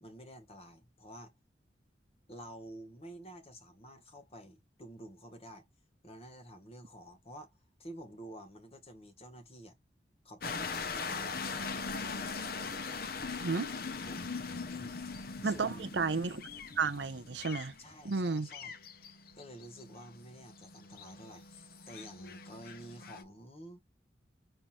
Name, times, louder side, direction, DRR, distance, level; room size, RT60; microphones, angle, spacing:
voice 1, 0.0-1.3 2.3-5.7 6.0-7.5 7.8-9.8 10.2-11.3 12.0-12.4 14.0-14.4 14.7-15.1 15.4-16.0 17.8-18.7 19.4-23.8, equal, 35° left, 1.3 m, -50 dB
sound 1, 10.4-23.2, left 4 dB, 55° left, 0.8 m, -41 dB
voice 2, 13.4-13.7 15.4-16.4 16.8-17.8 18.0-18.5, right 4 dB, 85° right, 0.7 m, -32 dB
5.7 x 2.8 x 2.9 m
head